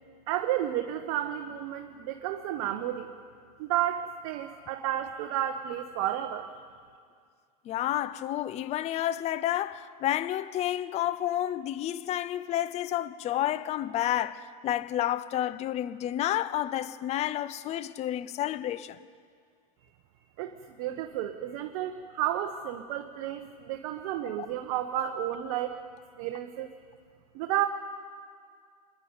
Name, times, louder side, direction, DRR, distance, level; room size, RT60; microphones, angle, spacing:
voice 1, 0.3-3.1 3.6-6.5 20.4-20.5 20.8-25.8 26.2-26.7 27.3-27.7, right 11 dB, 55° right, 1.2 m, -31 dB
voice 2, 7.6-19.0, left 12 dB, 35° left, 0.7 m, -30 dB
26.0 x 10.5 x 9.7 m
hypercardioid pair, 120°, 20 cm